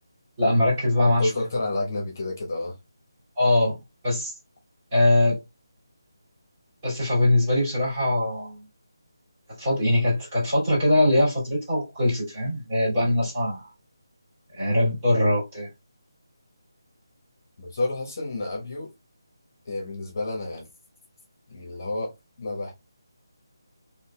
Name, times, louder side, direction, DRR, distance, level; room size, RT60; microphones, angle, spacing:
voice 1, 0.4-1.3 3.4-3.8 4.0-4.3 4.9-5.4 6.8-8.7 9.6-13.7 14.5-15.7, left 1 dB, 20° right, 2.2 m, -22 dB
voice 2, 1.0-2.8 12.9-13.1 17.6-18.9 19.6-20.7 21.5-22.7, left 2 dB, 45° left, 1.1 m, -30 dB
3.9 x 2.7 x 2.2 m
figure-of-eight pair, 170°, 2 cm